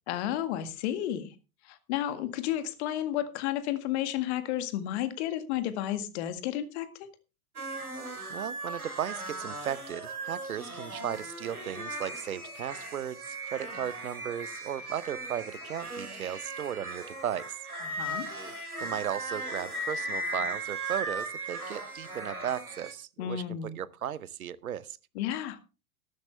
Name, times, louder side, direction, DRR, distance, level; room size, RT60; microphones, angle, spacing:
voice 1, 0.1-1.3 1.6-7.1 17.8-18.3 23.2-23.8 25.2-25.6, left 12 dB, 50° left, 1.9 m, -32 dB
sound 1, 7.6-22.9, right 2 dB, 90° right, 2.7 m, -38 dB
voice 2, 8.3-17.6 18.8-25.0, right 10 dB, 75° right, 0.9 m, -36 dB
13.0 x 12.0 x 3.3 m
figure-of-eight pair, 90°, 43 cm